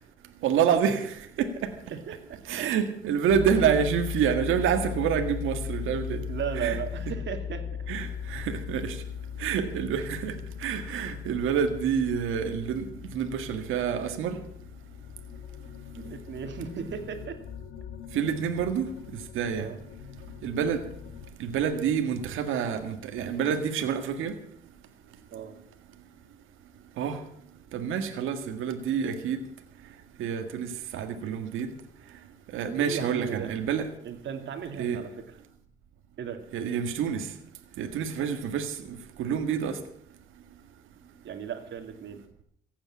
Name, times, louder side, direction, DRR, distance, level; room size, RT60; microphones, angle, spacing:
voice 1, 0.4-1.5 2.5-6.2 6.6-6.8 7.9-9.0 9.4-10.3 10.6-12.9 13.1-14.4 18.1-18.9 19.3-19.7 20.4-20.8 21.4-24.3 27.0-27.2 27.7-29.4 30.2-31.7 32.5-33.9 34.8-35.0 36.5-37.3 37.8-39.8, right 7 dB, 85° right, 6 dB, 1.8 m, -27 dB
voice 2, 1.9-2.7 6.3-7.7 16.0-17.4 19.6-19.8 25.3-25.6 32.8-33.5 34.0-35.1 36.2-36.4 41.2-42.2, right 8 dB, 65° right, 6 dB, 2.5 m, -36 dB
sound 1, 3.3-21.3, left 8 dB, 85° left, 1.7 m, -38 dB
15.5 x 8.7 x 8.6 m, 0.69 s
cardioid pair, 90°, 20 cm